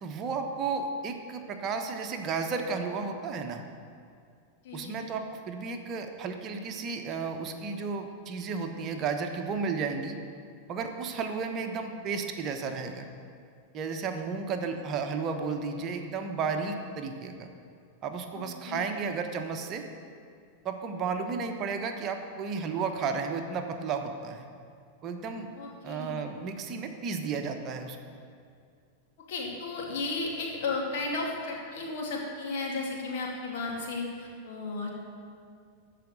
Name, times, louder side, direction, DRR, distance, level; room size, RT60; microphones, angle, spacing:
voice 1, 0.0-3.6 4.7-10.2 10.7-13.1 13.7-17.5 18.0-19.9 20.6-24.5 25.0-25.5 25.8-28.0, right 5 dB, 30° right, 5 dB, 1.1 m, -33 dB
voice 2, 4.6-5.0 18.3-18.8 25.5-26.1 29.3-34.9, left 3 dB, 50° left, -2 dB, 2.6 m, -34 dB
14.0 x 5.1 x 8.8 m, 2.2 s
figure-of-eight pair, 90°, 0 cm